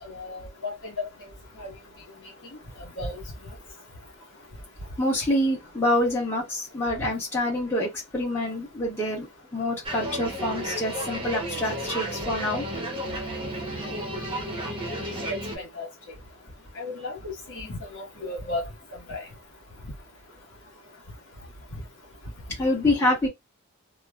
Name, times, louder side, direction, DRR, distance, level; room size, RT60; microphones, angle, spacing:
voice 1, 0.0-1.1 1.6-1.7 3.0-3.2 15.3-15.9 16.7-18.7 19.1-19.3 21.7-21.8, left 2 dB, 60° left, 1.5 m, -34 dB
voice 2, 5.0-9.3 9.5-12.7 22.6-23.3, left 1 dB, 10° left, 1.4 m, -26 dB
sound 1, 9.8-15.6, right 1 dB, 25° right, 0.9 m, -32 dB
3.1 x 2.2 x 2.3 m
head